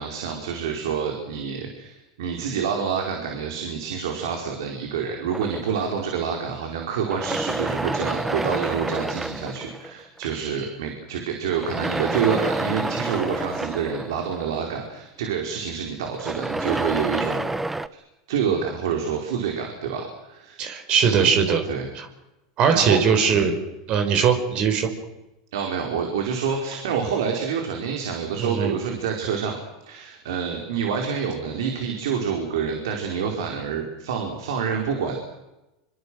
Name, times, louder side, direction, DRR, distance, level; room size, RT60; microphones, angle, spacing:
voice 1, 0.0-17.4 18.3-20.7 21.0-21.3 21.7-21.9 22.7-23.0 23.3-23.5 25.5-29.6 29.8-35.2, right 6 dB, 75° right, 2 dB, 4.9 m, -27 dB
sound 1, 5.3-6.6 7.0-10.2 11.5-15.0 16.0-17.9, right 2 dB, 10° right, 1.2 m, -29 dB
voice 2, 20.6-21.7 22.0-22.1 22.6-23.6 23.9-24.9 28.4-28.8, right 6 dB, 50° right, 6 dB, 5.4 m, -20 dB
26.5 x 24.5 x 6.5 m, 0.97 s
hypercardioid pair, 100°, 2 cm